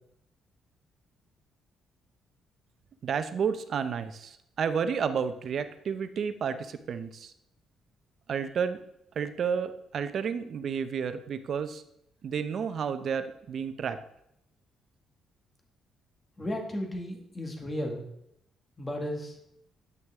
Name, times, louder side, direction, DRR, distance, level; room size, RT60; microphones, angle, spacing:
voice 1, 3.0-7.3 8.3-8.8 9.2-11.8 12.2-14.0, right 6 dB, 60° right, 11 dB, 0.7 m, -31 dB
voice 2, 16.4-18.1 18.8-19.4, equal, 20° left, 1 dB, 1.9 m, -34 dB
9.1 x 6.2 x 3.6 m, 0.77 s
cardioid pair, 90°, 0 cm